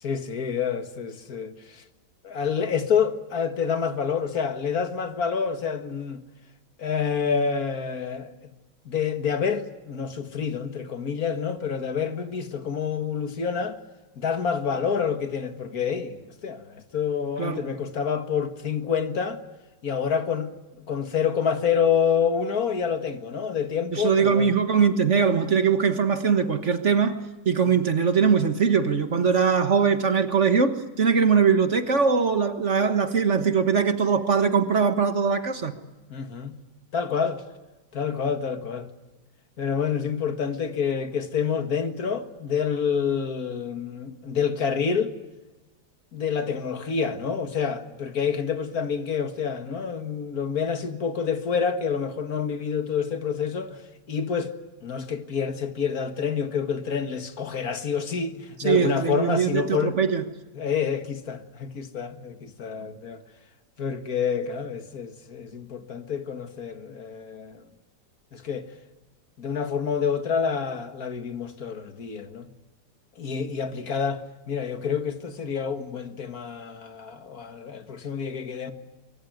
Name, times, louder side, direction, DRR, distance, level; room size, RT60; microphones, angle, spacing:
voice 1, 0.0-1.8 2.2-6.2 6.8-8.5 8.9-13.8 14.2-19.4 19.8-20.5 20.9-24.5 27.7-27.8 36.1-36.6 36.9-37.5 37.9-38.9 39.6-45.1 46.1-53.8 54.1-54.5 54.8-60.0 60.6-63.2 63.8-67.6 68.3-68.7 69.4-72.5 73.2-78.7, left 6 dB, 55° left, 2.1 m, -28 dB
voice 2, 23.9-35.7 58.6-60.2, right 6 dB, 45° right, 1.6 m, -21 dB
23.5 x 23.5 x 9.4 m
omnidirectional pair, 1.9 m